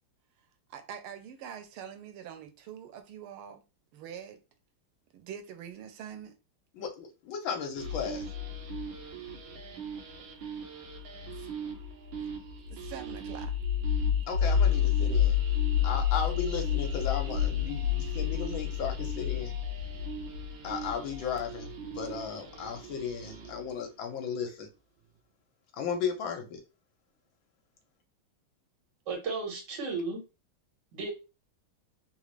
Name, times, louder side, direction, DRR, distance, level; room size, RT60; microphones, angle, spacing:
voice 1, 0.7-3.6 3.9-4.4 5.1-6.4 11.3-11.5 12.2-12.3 12.7-13.6, right 8 dB, 90° right, 1.6 m, -44 dB
voice 2, 6.8-8.3 14.3-15.4 15.8-19.5 20.6-24.7 25.8-26.6, left 6 dB, 70° left, 1.5 m, -35 dB
sound 1, 7.8-23.7, left 7 dB, 75° right, 1.4 m, -31 dB
voice 3, 29.1-30.2 30.9-31.1, right 3 dB, 60° right, 1.8 m, -34 dB
3.7 x 2.4 x 3.1 m
omnidirectional pair, 2.3 m